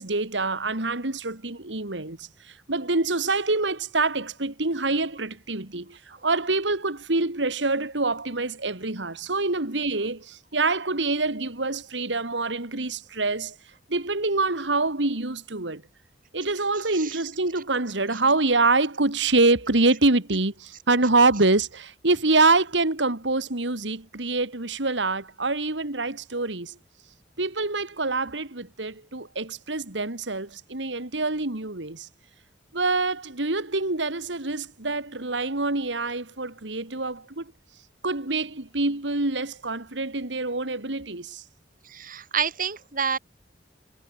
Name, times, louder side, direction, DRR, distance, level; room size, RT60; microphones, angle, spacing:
voice 1, 0.0-13.6 13.9-15.8 16.3-26.8 27.4-32.1 32.7-37.5 38.0-41.4, right 3 dB, 80° right, 2.4 m, -25 dB
voice 2, 41.9-43.2, right 7 dB, 50° right, 3.1 m, -28 dB
head